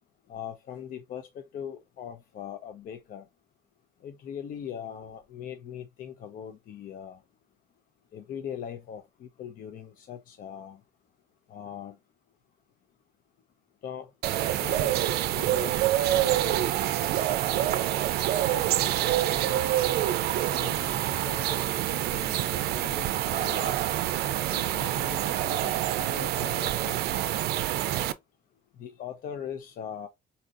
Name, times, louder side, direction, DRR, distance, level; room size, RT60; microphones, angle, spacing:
voice 1, 0.3-3.2 4.0-7.2 8.1-10.8 11.5-12.0 13.8-14.1 14.6-14.9 15.3-16.7 28.8-30.1, left 9 dB, 55° left, 0.5 m, -40 dB
sound 1, 14.2-28.1, right 13 dB, 70° right, 0.4 m, -27 dB
voice 2, 18.4-19.8 20.5-23.8 24.5-27.0, left 6 dB, 70° left, 1.0 m, -43 dB
4.1 x 2.6 x 2.3 m
cardioid pair, 110°, 17 cm